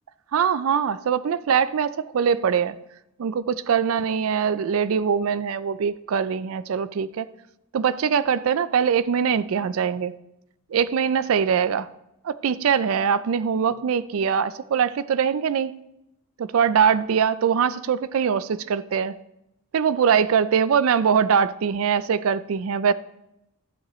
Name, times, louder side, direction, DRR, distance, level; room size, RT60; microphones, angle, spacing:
voice 1, 0.3-2.8 3.2-7.3 7.7-10.1 10.7-11.9 12.2-15.8 16.4-19.1 19.7-22.9, right 7 dB, 70° right, 0.4 m, -22 dB
12.5 x 9.1 x 3.1 m
head